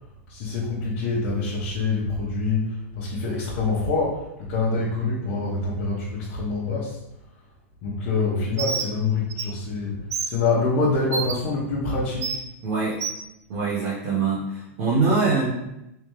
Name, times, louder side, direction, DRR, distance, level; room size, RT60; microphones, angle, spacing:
voice 1, 0.3-7.0 7.8-12.4, left 3 dB, 35° left, -8 dB, 0.7 m, -26 dB
Bird, 8.6-8.9 9.3-9.4 10.1-10.3 11.1-11.3 12.2-12.4 13.0-13.2, right 5 dB, 90° right, 0.5 m, -27 dB
voice 2, 12.6-13.0 13.5-15.5, right 4 dB, 50° right, -8 dB, 0.9 m, -23 dB
3.3 x 3.1 x 3.0 m, 0.86 s
supercardioid pair, 175°, 8 cm